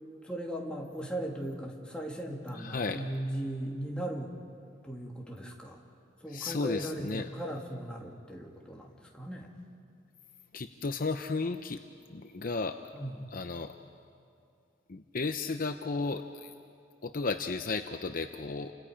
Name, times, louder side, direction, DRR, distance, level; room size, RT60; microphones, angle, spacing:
voice 1, 0.2-4.3 4.8-5.8 6.2-9.5 12.9-13.3, right 1 dB, 5° left, -2 dB, 2.5 m, -38 dB
voice 2, 2.5-3.0 6.3-7.3 10.5-11.8 12.1-12.8 13.3-13.7 14.9-16.5 17.0-18.7, left 3 dB, 50° left, 7 dB, 0.7 m, -34 dB
30.0 x 26.0 x 5.1 m, 2.5 s
head